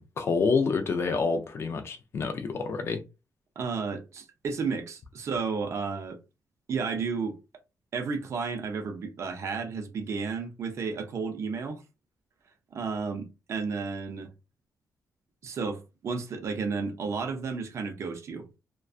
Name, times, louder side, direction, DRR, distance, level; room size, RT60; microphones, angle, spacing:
voice 1, 0.0-3.0, left 4 dB, 40° left, 0.4 m, -28 dB
voice 2, 3.6-6.2 6.7-7.4 7.9-11.8 12.7-14.3 15.4-18.5, right 5 dB, 45° right, 0.4 m, -32 dB
2.4 x 2.2 x 2.4 m
wide cardioid pair, 175°, 7 cm